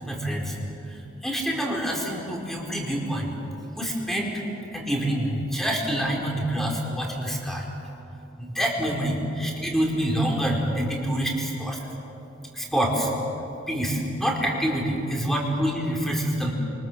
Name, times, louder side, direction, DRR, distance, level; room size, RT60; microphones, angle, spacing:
voice 1, 0.1-0.6 1.2-3.3 3.8-4.4 4.7-7.7 8.4-11.8 12.5-13.1 13.7-16.5, equal, ahead, -1 dB, 4.6 m, -26 dB
29.0 x 24.5 x 7.6 m, 3.0 s
head